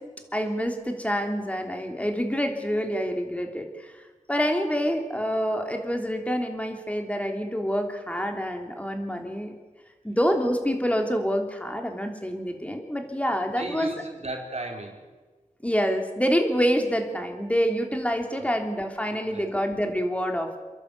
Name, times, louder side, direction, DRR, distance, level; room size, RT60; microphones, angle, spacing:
voice 1, 0.3-3.9 4.3-9.5 10.0-13.9 15.6-20.6, equal, 10° left, 4 dB, 3.3 m, -27 dB
voice 2, 13.3-15.1 18.2-18.5 19.1-19.5, right 2 dB, 60° right, 1 dB, 4.2 m, -36 dB
28.5 x 11.5 x 8.3 m, 1.3 s
wide cardioid pair, 70°, 13 cm